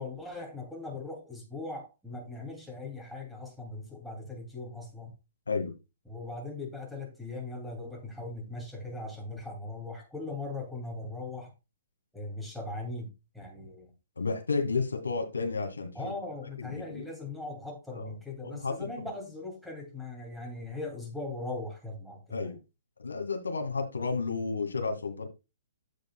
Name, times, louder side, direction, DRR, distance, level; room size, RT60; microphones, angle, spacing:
voice 1, 0.0-5.1 6.1-11.5 12.1-13.9 15.9-22.4, left 2 dB, ahead, 2.7 m, -39 dB
voice 2, 14.2-16.1 16.6-17.0 17.9-18.1 18.4-19.1 22.3-22.6 23.0-25.3, left 4 dB, 75° left, 2.1 m, -32 dB
15.0 x 5.2 x 2.3 m
figure-of-eight pair, 125°, 0 cm